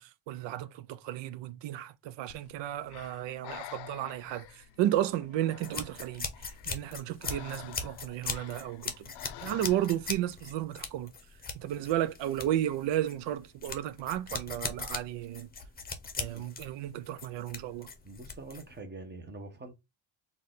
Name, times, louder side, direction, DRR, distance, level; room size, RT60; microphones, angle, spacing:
voice 1, 0.0-6.3 6.7-9.1 9.4-11.1 11.5-15.5 16.2-17.9, right 12 dB, 70° right, 0.6 m, -33 dB
Breathing, 2.3-10.2, left 13 dB, 60° left, 0.5 m, -49 dB
sound 1, 5.6-18.8, left 4 dB, 20° left, 0.8 m, -40 dB
voice 2, 18.0-19.7, right 3 dB, 25° right, 1.0 m, -45 dB
4.1 x 2.6 x 3.7 m
cardioid pair, 135°, 45 cm